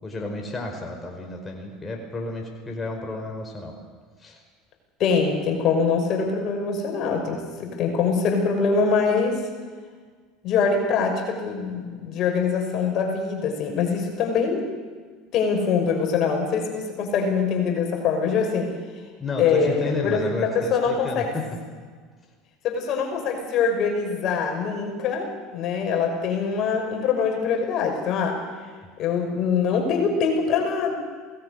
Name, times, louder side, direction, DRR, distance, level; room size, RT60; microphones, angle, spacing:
voice 1, 0.0-3.7 4.2-4.4 19.2-21.5 28.8-28.9, left 2 dB, 20° left, 1 dB, 5.2 m, -32 dB
voice 2, 5.0-9.4 10.4-14.7 15.3-18.7 19.4-21.3 22.6-28.4 29.0-30.9, left 5 dB, 55° left, 3 dB, 5.8 m, -23 dB
28.0 x 18.5 x 6.8 m, 1.5 s
hypercardioid pair, 90°, 0 cm